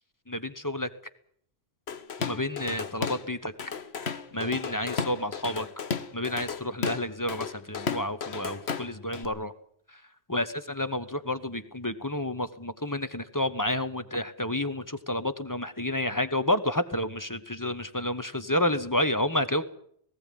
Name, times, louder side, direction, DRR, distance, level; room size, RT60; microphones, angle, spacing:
voice 1, 0.3-0.9 2.2-3.5 4.0-5.7 6.1-9.5 10.3-19.6, left 1 dB, 20° left, 11 dB, 1.1 m, -30 dB
Drum kit / Drum, 1.9-3.3 3.6-9.2, left 6 dB, 70° left, 1.4 m, -34 dB
19.0 x 16.0 x 9.3 m, 0.66 s
omnidirectional pair, 1.1 m